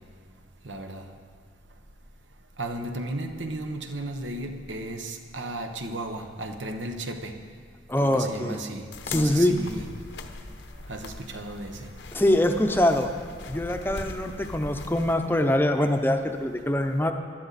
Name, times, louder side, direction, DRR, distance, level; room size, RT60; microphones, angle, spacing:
voice 1, 0.6-1.1 2.6-7.4 8.0-9.9 10.9-11.9, right 1 dB, 90° right, 1.1 m, -34 dB
voice 2, 7.9-8.6 9.1-9.5 12.1-13.1 13.5-17.1, left 1 dB, 10° left, 0.6 m, -23 dB
sound 1, 8.9-15.1, left 3 dB, 80° left, 0.9 m, -40 dB
20.0 x 12.0 x 4.2 m
head